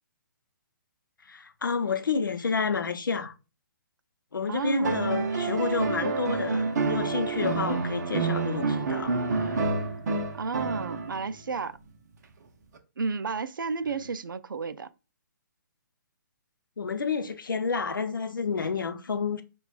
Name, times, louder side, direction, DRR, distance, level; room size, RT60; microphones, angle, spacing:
voice 1, 1.3-3.3 4.3-9.1 16.8-19.4, left 5 dB, 85° left, 0.6 m, -29 dB
voice 2, 4.5-5.0 10.3-11.8 13.0-14.9, right 5 dB, 85° right, 0.4 m, -32 dB
sound 1, 4.8-11.3 12.8-12.9, right 4 dB, 55° right, 0.7 m, -28 dB
6.5 x 2.3 x 2.3 m
hypercardioid pair, 140°, 11 cm